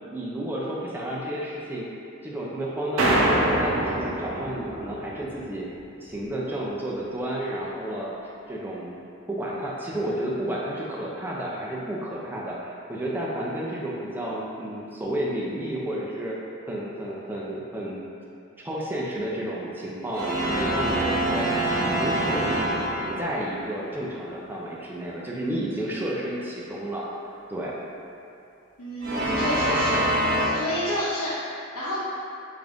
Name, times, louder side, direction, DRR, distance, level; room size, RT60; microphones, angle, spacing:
voice 1, 0.0-1.8 2.2-5.7 6.0-8.1 8.5-9.0 9.3-16.4 16.7-18.0 18.6-21.5 21.8-27.1 27.5-27.8, right 1 dB, 10° right, -5 dB, 0.5 m, -31 dB
sound 1, 3.0-5.4, right 1 dB, 85° right, 0.6 m, -24 dB
sound 2, 20.1-23.5 29.0-30.5, right 1 dB, 50° right, 0.9 m, -25 dB
voice 2, 28.8-30.1 30.4-32.0, equal, 90° left, -9 dB, 0.7 m, -30 dB
3.8 x 3.6 x 3.5 m, 2.6 s
head